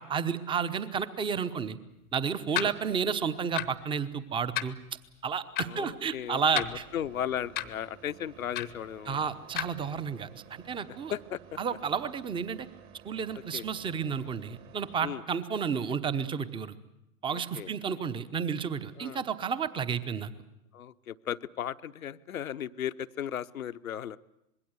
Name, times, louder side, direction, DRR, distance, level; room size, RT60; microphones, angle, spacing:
voice 1, 0.0-1.8 2.1-4.8 5.2-6.8 9.1-11.1 11.6-12.7 13.0-16.7 17.2-20.3, right 6 dB, 10° right, 14 dB, 0.9 m, -31 dB
sound 1, 2.5-2.7 3.5-3.8 4.5-4.7 5.5-5.7 6.5-7.0 7.6-7.7 8.5-8.8 9.6-9.7, left 15 dB, 20° left, 0.9 m, -32 dB
voice 2, 5.6-9.2 10.9-11.6 13.5-13.6 15.0-15.2 17.3-17.9 19.0-19.2 20.7-24.2, left 10 dB, 65° left, 12 dB, 0.9 m, -36 dB
sound 2, 6.8-15.2, right 8 dB, 30° right, 1.6 m, -53 dB
25.5 x 21.5 x 8.1 m, 0.85 s
figure-of-eight pair, 105°, 45 cm